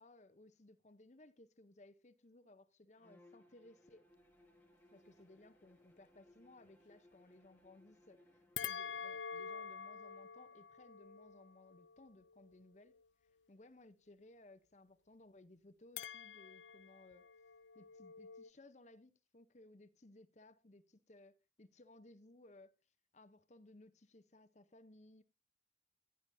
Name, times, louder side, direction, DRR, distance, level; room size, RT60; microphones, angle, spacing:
voice 1, 0.0-4.0 4.9-13.0 13.5-17.3 17.7-22.7 23.1-25.2, left 2 dB, 40° left, 0.8 m, -61 dB
Bowed string instrument, 3.0-8.8, left 1 dB, 10° left, 2.1 m, -67 dB
sound 1, 8.6-13.0 16.0-18.5, left 7 dB, 90° left, 0.5 m, -48 dB
15.5 x 9.9 x 2.7 m
head